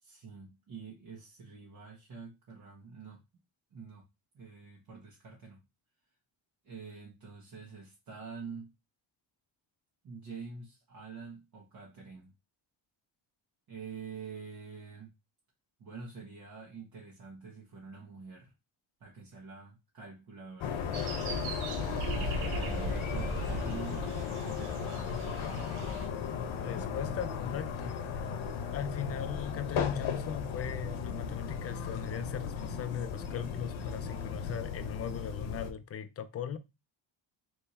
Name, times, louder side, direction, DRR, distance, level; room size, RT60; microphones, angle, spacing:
voice 1, 0.0-3.2 3.7-4.1 4.3-5.6 6.6-8.7 10.0-12.3 13.7-15.1 15.8-18.5 19.0-21.2 21.9-24.1 24.4-25.1, right 5 dB, 50° right, 1.4 m, -47 dB
sound 1, 20.6-35.7, left 6 dB, 75° left, 1.0 m, -36 dB
sound 2, 20.9-26.1, right 2 dB, 85° right, 1.4 m, -38 dB
voice 2, 26.6-28.1 28.7-36.6, left 8 dB, 30° left, 0.5 m, -38 dB
3.5 x 3.3 x 4.2 m
cardioid pair, 135°, 47 cm